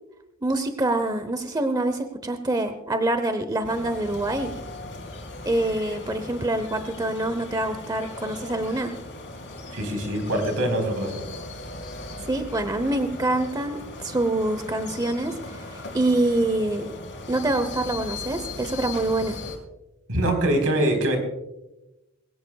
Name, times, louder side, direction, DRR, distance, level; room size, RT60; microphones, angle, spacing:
voice 1, 0.4-4.5 5.5-8.9 12.3-16.8 17.3-19.4, right 2 dB, 15° right, 9 dB, 0.8 m, -25 dB
sound 1, 3.6-19.6, left 2 dB, 55° left, 4.3 m, -38 dB
voice 2, 9.7-11.1 20.1-21.2, right 1 dB, 70° right, 5 dB, 4.0 m, -23 dB
22.0 x 17.0 x 2.3 m, 0.97 s
head